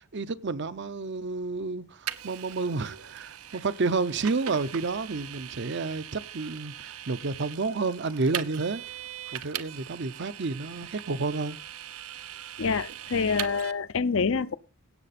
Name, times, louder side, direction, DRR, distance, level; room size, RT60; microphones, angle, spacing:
voice 1, 0.0-8.8 9.3-11.6, right 3 dB, 55° right, 0.7 m, -30 dB
Vehicle, 2.1-13.7, right 11 dB, 85° right, 0.8 m, -40 dB
voice 2, 12.6-14.6, left 5 dB, 60° left, 0.6 m, -26 dB
17.0 x 7.4 x 4.2 m
head